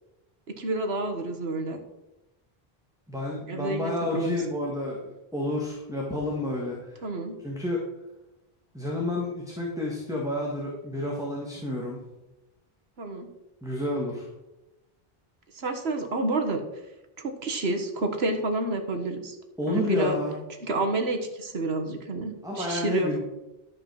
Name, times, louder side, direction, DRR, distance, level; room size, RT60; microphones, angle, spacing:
voice 1, 0.5-1.8 3.5-4.4 7.0-7.4 13.0-13.3 15.5-16.6 17.2-19.4 19.7-20.2 20.7-23.2, right 2 dB, 80° right, 5 dB, 1.7 m, -29 dB
voice 2, 3.1-7.0 7.4-7.8 8.7-12.0 13.6-14.3 19.6-20.4 22.4-23.2, left 1 dB, 5° right, -2 dB, 1.7 m, -30 dB
12.5 x 5.3 x 6.3 m, 0.98 s
omnidirectional pair, 1.0 m